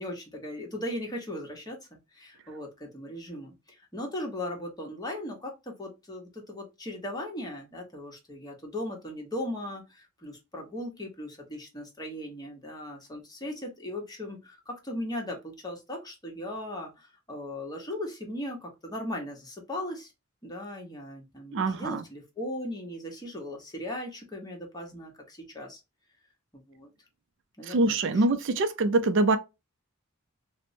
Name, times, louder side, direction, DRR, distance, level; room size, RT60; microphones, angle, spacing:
voice 1, 0.0-1.8 2.1-20.1 20.4-25.8 26.5-26.9 27.6-28.2, left 1 dB, 20° left, 1.0 m, -38 dB
voice 2, 21.5-22.0 27.6-29.4, right 2 dB, 60° right, 0.4 m, -24 dB
4.3 x 2.1 x 2.6 m
head